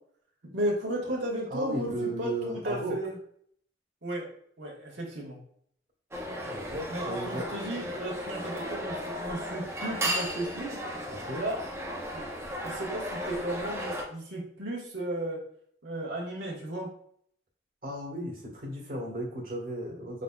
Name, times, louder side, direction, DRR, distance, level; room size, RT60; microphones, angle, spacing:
voice 1, 0.5-3.2 4.0-4.3 4.6-5.4 6.9-10.8 11.3-11.6 12.1-12.2 12.6-15.4 15.8-16.9, right 1 dB, 85° right, -4 dB, 1.4 m, -34 dB
voice 2, 1.5-2.9 6.4-7.5 11.1-11.4 17.8-20.2, right 1 dB, 50° right, -3 dB, 1.4 m, -35 dB
sound 1, 6.1-14.0, equal, 15° right, 0.7 m, -35 dB
5.1 x 4.0 x 2.3 m, 0.64 s
head